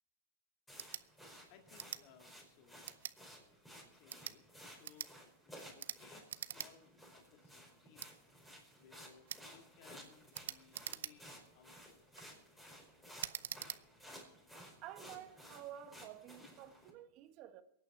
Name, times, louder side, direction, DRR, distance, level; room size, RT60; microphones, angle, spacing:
sound 1, 0.7-16.9, equal, 5° left, 5.1 m, -57 dB
sound 2, 0.7-1.0 1.7-2.0 2.8-3.2 4.0-4.4 4.8-5.1 5.8-6.0 6.3-6.7 7.0-7.1 8.0-8.1 9.3-9.5 10.3-11.4 11.9-12.3 13.2-13.8, right 10 dB, 85° right, 0.5 m, -44 dB
voice 1, 1.5-2.8 3.2-3.6 3.8-5.1 5.5-12.2, left 8 dB, 55° left, 2.0 m, -64 dB
voice 2, 14.8-17.6, right 11 dB, 45° right, 1.4 m, -51 dB
23.5 x 9.2 x 4.7 m
hypercardioid pair, 130°, 0 cm